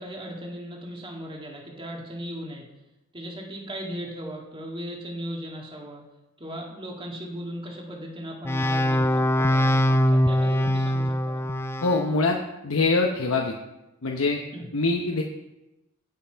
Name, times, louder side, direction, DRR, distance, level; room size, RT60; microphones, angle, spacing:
voice 1, 0.0-2.6 3.1-6.0 6.4-11.4 14.5-14.7, equal, 25° right, -1 dB, 1.8 m, -37 dB
sound 1, 8.5-12.1, equal, 10° left, 0.4 m, -22 dB
voice 2, 11.8-12.4 12.6-13.5 14.0-14.4 14.7-15.2, left 3 dB, 80° left, 2 dB, 0.8 m, -23 dB
17.0 x 5.7 x 4.5 m, 0.97 s
head